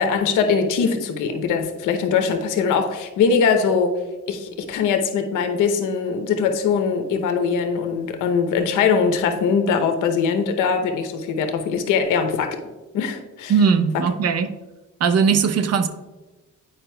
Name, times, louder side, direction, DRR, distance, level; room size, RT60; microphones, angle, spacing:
voice 1, 0.0-4.0 4.3-12.6 12.9-13.5 13.9-14.0, left 6 dB, 85° left, 5 dB, 0.8 m, -21 dB
voice 2, 13.5-14.5 15.0-15.9, right 6 dB, 55° right, 9 dB, 0.6 m, -19 dB
8.8 x 4.9 x 2.2 m, 1.1 s
cardioid pair, 90°, 30 cm